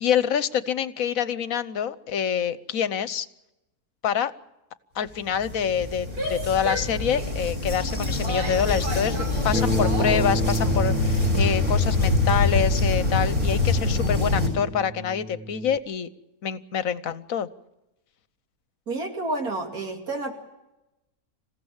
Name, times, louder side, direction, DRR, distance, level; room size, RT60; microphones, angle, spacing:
voice 1, 0.0-3.3 4.0-4.3 4.9-16.1 16.4-17.5, left 8 dB, 65° left, 14 dB, 1.3 m, -26 dB
sound 1, 5.3-14.5, left 2 dB, 25° right, 6.1 m, -24 dB
Female speech woman speaking / Yell, 6.0-10.4, equal, 90° right, 6.2 m, -34 dB
Bass guitar, 9.5-15.8, right 1 dB, 10° right, 0.5 m, -32 dB
voice 2, 18.9-20.3, right 2 dB, 75° right, 2 dB, 3.0 m, -29 dB
27.5 x 16.0 x 7.2 m, 0.96 s
omnidirectional pair, 1.6 m